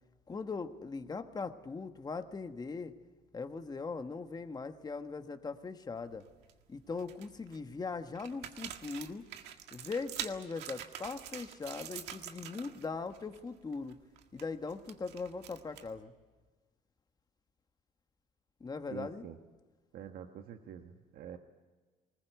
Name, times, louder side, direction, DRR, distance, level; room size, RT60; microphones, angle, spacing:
voice 1, 0.3-2.9 3.3-6.2 6.7-9.2 9.7-14.0 14.3-16.1 18.6-19.2, left 4 dB, 25° left, 7 dB, 1.3 m, -40 dB
sound 1, 6.0-6.5 6.9-7.6 8.1-12.9 13.1-13.4 13.7-16.0, right 10 dB, 90° right, 1.8 m, -45 dB
voice 2, 18.9-19.4 19.9-21.4, right 9 dB, 70° right, 5 dB, 1.4 m, -46 dB
20.5 x 20.0 x 8.1 m, 1.4 s
cardioid pair, 110°, 17 cm